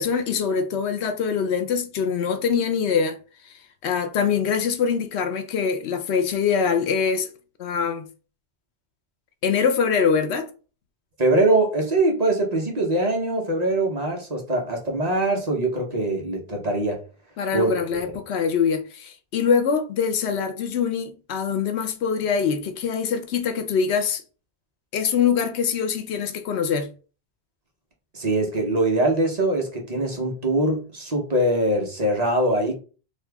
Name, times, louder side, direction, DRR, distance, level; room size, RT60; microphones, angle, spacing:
voice 1, 0.0-3.2 3.8-7.3 7.6-8.1 9.4-10.5 17.4-24.2 24.9-26.9, left 6 dB, 80° left, 0.9 m, -23 dB
voice 2, 11.2-17.0 17.5-18.0 28.1-32.8, right 2 dB, 40° right, 0.8 m, -23 dB
2.9 x 2.6 x 3.3 m
omnidirectional pair, 1.1 m